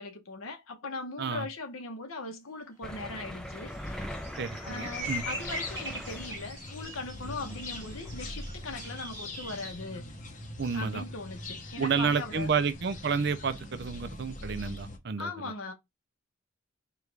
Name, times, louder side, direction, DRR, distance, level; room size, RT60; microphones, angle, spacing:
voice 1, 0.0-4.3 4.6-10.1 10.7-12.6 15.2-15.7, left 3 dB, 85° left, 0.9 m, -40 dB
sound 1, 2.8-6.7 7.5-7.7 8.0-8.1, equal, 5° left, 0.4 m, -41 dB
sound 2, 3.2-9.7, equal, 15° right, 1.5 m, -42 dB
voice 2, 4.4-5.2 10.6-11.0 11.8-15.3, right 5 dB, 50° right, 0.5 m, -30 dB
sound 3, 4.9-15.0, left 1 dB, 35° left, 0.7 m, -42 dB
4.6 x 2.4 x 3.3 m
head